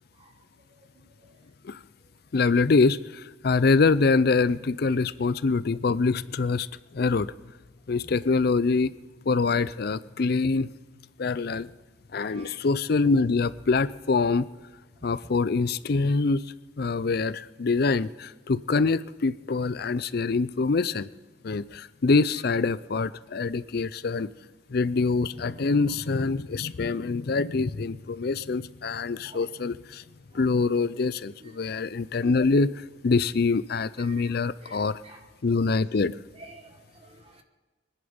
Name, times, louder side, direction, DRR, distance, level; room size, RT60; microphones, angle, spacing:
voice 1, 2.3-6.7 6.9-7.3 7.9-8.9 9.3-10.7 11.2-11.7 12.1-14.5 15.0-16.4 16.8-21.1 21.4-24.3 24.7-30.0 30.3-35.0 35.4-36.2, left 4 dB, 50° left, 17 dB, 0.5 m, -25 dB
voice 2, 12.2-12.6 29.3-29.4 31.4-31.5 34.6-35.2 36.4-37.4, right 2 dB, 30° right, 5 dB, 1.2 m, -50 dB
25.0 x 10.5 x 5.2 m, 1.3 s
head